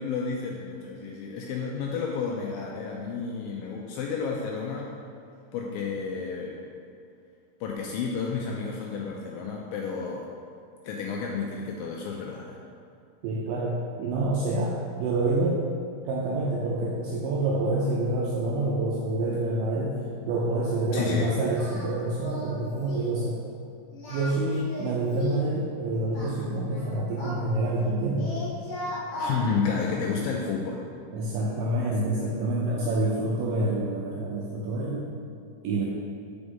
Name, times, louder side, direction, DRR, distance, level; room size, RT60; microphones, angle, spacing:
voice 1, 0.0-4.9 5.5-6.6 7.6-10.3 10.8-12.6 20.9-21.3 29.2-30.8, left 5 dB, 85° left, -1 dB, 2.0 m, -31 dB
voice 2, 13.2-15.6 16.0-19.9 20.3-23.4 24.1-28.3 30.0-30.1 31.1-35.1 35.6-35.9, right 2 dB, 85° right, -4 dB, 1.9 m, -27 dB
Singing, 21.5-21.9 22.2-22.6 22.9-23.2 23.9-25.5 26.1-27.9 28.2-29.4, left 2 dB, 55° left, 1.8 m, -36 dB
5.2 x 4.9 x 5.3 m, 2.4 s
omnidirectional pair, 4.7 m